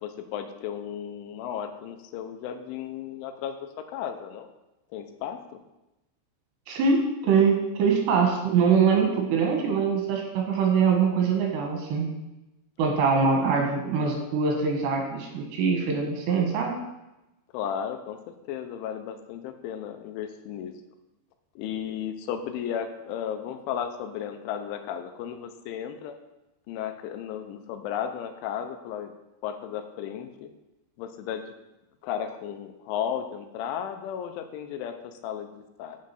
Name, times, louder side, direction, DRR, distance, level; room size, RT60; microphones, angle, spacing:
voice 1, 0.0-3.6 3.9-4.5 4.9-5.4 17.5-20.7 21.6-26.1 26.7-29.1 29.4-30.5 31.0-31.5 32.0-36.0, left 9 dB, 85° left, 7 dB, 3.2 m, -34 dB
voice 2, 6.7-12.1 12.8-16.7, right 5 dB, 70° right, 1 dB, 3.4 m, -23 dB
7.5 x 7.4 x 5.8 m, 0.97 s
omnidirectional pair, 5.5 m